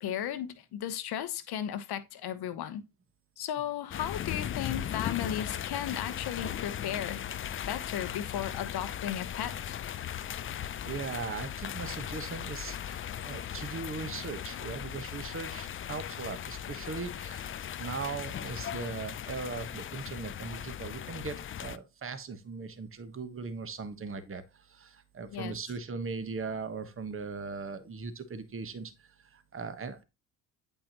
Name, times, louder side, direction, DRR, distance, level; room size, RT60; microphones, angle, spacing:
voice 1, 0.0-2.8 3.4-7.2 7.6-9.8 25.3-25.5, left 10 dB, 55° left, 1.0 m, -35 dB
sound 1, 3.9-21.8, left 10 dB, 30° left, 0.4 m, -38 dB
voice 2, 10.8-24.4 24.7-28.9 29.3-30.0, right 4 dB, 30° right, 1.2 m, -39 dB
8.6 x 5.4 x 2.9 m
hypercardioid pair, 60°, 46 cm